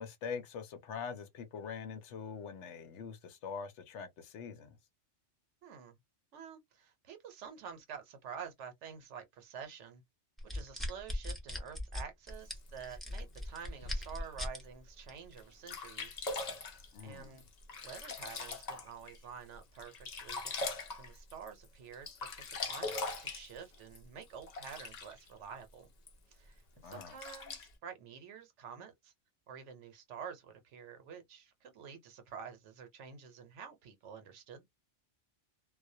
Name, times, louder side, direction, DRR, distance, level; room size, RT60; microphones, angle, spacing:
voice 1, 0.0-4.8 16.9-17.4 26.8-27.2, left 6 dB, 75° left, 0.9 m, -43 dB
voice 2, 5.6-6.0 6.3-10.0 10.4-16.6 17.0-17.4 17.8-19.9 20.2-20.4 21.0-25.9 26.3-29.1 29.5-34.7, right 7 dB, 75° right, 1.0 m, -49 dB
sound 1, 10.4-14.6 15.1-15.3, left 1 dB, ahead, 0.5 m, -38 dB
Sink (filling or washing), 12.3-14.3 14.9-15.0 15.4-15.5 15.7-19.2 19.5-21.7 21.9-25.3 26.1-26.2 26.9-27.7, left 3 dB, 50° left, 0.5 m, -41 dB
2.4 x 2.1 x 2.6 m
omnidirectional pair, 1.2 m